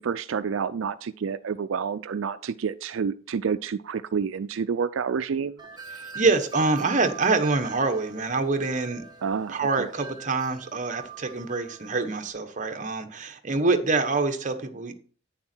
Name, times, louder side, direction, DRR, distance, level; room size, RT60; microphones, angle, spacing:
voice 1, 0.0-5.6 9.2-9.9, right 6 dB, 90° right, 0.4 m, -29 dB
Wind chime, 5.6-12.3, right 7 dB, 20° right, 1.5 m, -42 dB
voice 2, 5.9-9.0 9.5-14.9, right 3 dB, 40° right, 1.2 m, -25 dB
9.7 x 7.3 x 4.4 m
head